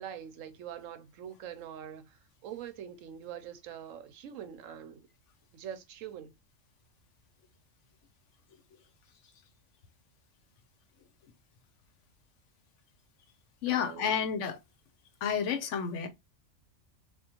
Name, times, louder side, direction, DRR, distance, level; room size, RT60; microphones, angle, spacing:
voice 1, 0.0-5.1 5.5-6.3 13.7-14.3, right 9 dB, 80° right, 1.0 m, -44 dB
voice 2, 13.6-14.6 15.2-16.1, left 7 dB, 70° left, 0.9 m, -30 dB
3.6 x 2.4 x 2.8 m
omnidirectional pair, 1.4 m